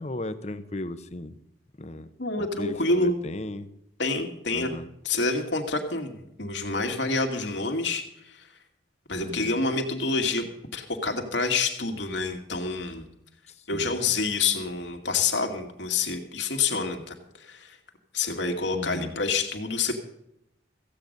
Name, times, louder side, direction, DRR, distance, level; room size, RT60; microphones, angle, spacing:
voice 1, 0.0-1.3 1.8-2.1 2.4-3.7 4.5-4.9 9.2-9.6 13.7-13.9 16.7-17.0 18.7-19.1, left 1 dB, 35° left, 12 dB, 0.8 m, -36 dB
voice 2, 2.2-3.2 4.0-4.7 5.0-8.5 9.1-10.4 10.7-13.0 13.7-17.8 18.1-19.9, left 3 dB, 70° left, 4 dB, 2.2 m, -27 dB
15.5 x 8.9 x 6.6 m, 0.83 s
head